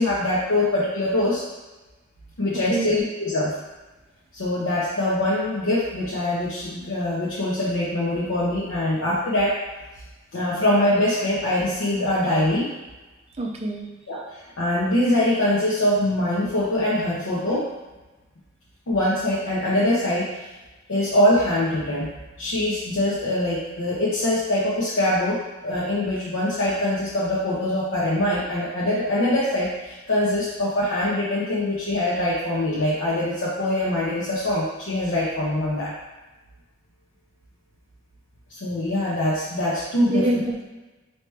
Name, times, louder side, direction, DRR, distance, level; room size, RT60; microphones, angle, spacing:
voice 1, 0.0-1.4 2.4-3.5 4.3-9.6 10.3-12.7 14.1-17.7 18.9-20.5 20.9-22.1 22.4-35.9 38.5-40.3, left 1 dB, 85° left, -8 dB, 0.8 m, -23 dB
voice 2, 2.7-3.1 13.3-13.9 40.1-40.7, right 1 dB, 30° right, 1 dB, 0.5 m, -25 dB
4.4 x 2.9 x 3.3 m, 1.1 s
head